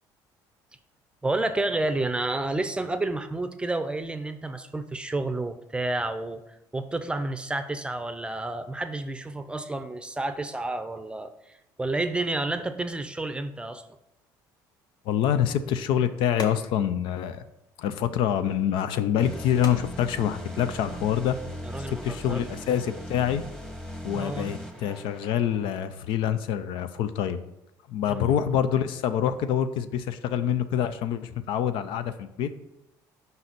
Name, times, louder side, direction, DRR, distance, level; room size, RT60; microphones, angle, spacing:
voice 1, 1.2-6.4 6.7-11.3 11.8-13.8 21.6-22.4 24.1-24.5 28.1-28.2, right 2 dB, 10° right, 10 dB, 0.6 m, -30 dB
voice 2, 15.1-17.4 17.8-21.4 21.9-23.4 24.0-27.4 27.9-32.5, left 9 dB, 70° left, 12 dB, 0.5 m, -26 dB
sound 1, 15.3-21.4, left 3 dB, 45° left, 1.1 m, -46 dB
sound 2, 19.2-25.7, equal, 5° left, 1.2 m, -39 dB
5.4 x 4.0 x 5.9 m, 0.86 s
supercardioid pair, 95°, 9 cm